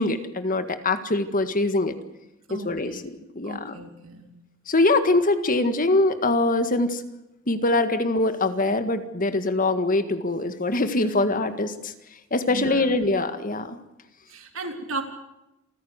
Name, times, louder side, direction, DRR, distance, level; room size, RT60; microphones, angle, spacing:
voice 1, 0.0-1.9 2.5-3.8 4.7-7.0 7.5-11.9 12.3-13.8, left 2 dB, 45° left, 9 dB, 1.8 m, -23 dB
voice 2, 2.5-3.0 3.4-4.3 12.5-12.9 14.3-15.0, right 2 dB, 75° right, 4 dB, 3.7 m, -35 dB
28.0 x 15.0 x 8.1 m, 0.93 s
head